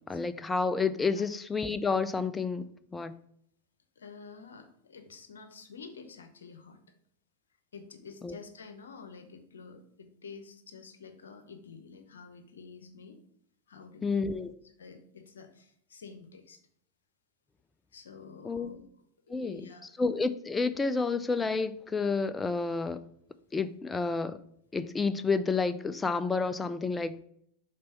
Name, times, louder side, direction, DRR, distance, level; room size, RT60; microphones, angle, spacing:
voice 1, 0.1-2.7 2.9-3.1 8.2-8.4 14.0-14.5 18.4-18.7 19.3-19.7 20.0-23.0 23.5-24.4 24.7-27.3, left 4 dB, 15° left, 12 dB, 0.4 m, -30 dB
voice 2, 4.0-6.8 7.7-13.2 13.7-14.3 14.8-16.6 17.9-18.8 19.3-19.9, left 5 dB, 80° left, 7 dB, 0.8 m, -49 dB
5.4 x 3.9 x 5.5 m, 0.67 s
hypercardioid pair, 95°, 0 cm